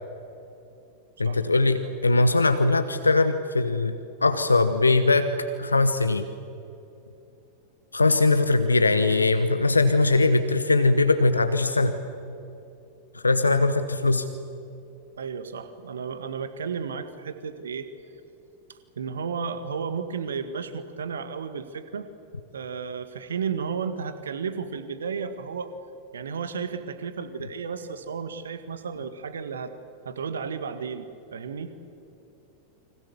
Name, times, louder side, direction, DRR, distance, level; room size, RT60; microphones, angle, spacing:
voice 1, 1.2-5.3 5.6-6.2 7.9-11.9 13.2-14.3, left 3 dB, 80° left, 10 dB, 1.2 m, -21 dB
voice 2, 15.2-17.9 18.7-22.1 22.5-25.7 26.1-29.8 30.0-31.7, right 6 dB, 65° right, 10 dB, 1.8 m, -33 dB
29.5 x 24.5 x 7.2 m, 2.8 s
figure-of-eight pair, 90°, 0 cm